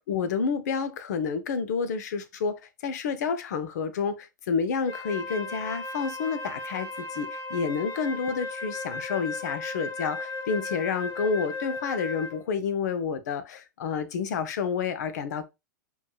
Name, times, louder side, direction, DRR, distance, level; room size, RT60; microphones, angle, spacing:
voice 1, 0.1-15.5, left 5 dB, 55° left, 0.7 m, -29 dB
Wind instrument woodwind instrument, 4.8-12.5, left 3 dB, 35° left, 1.3 m, -36 dB
5.2 x 3.2 x 2.3 m
figure-of-eight pair, 100°, 11 cm